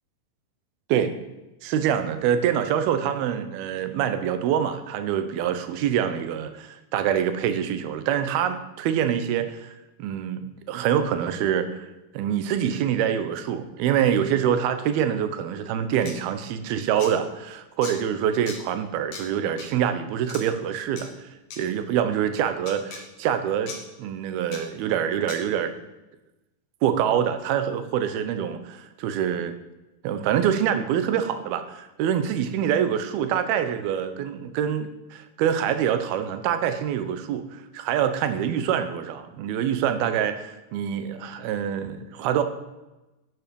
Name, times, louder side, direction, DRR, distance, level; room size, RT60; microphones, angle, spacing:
voice 1, 1.6-10.4 10.7-11.9 12.1-21.3 21.6-25.7 26.8-29.6 30.0-42.4, right 9 dB, 80° right, 10 dB, 2.9 m, -25 dB
sound 1, 16.0-16.1 17.0-17.1 17.8-18.0 18.5-18.6 19.1-19.2 19.6-19.7 20.3-20.4 21.0-21.1 21.5-21.6 22.7-23.0 23.7-23.8 24.5-24.6 25.3-25.4, left 5 dB, 60° left, 3.3 m, -37 dB
12.0 x 9.9 x 5.3 m, 1.0 s
omnidirectional pair, 4.3 m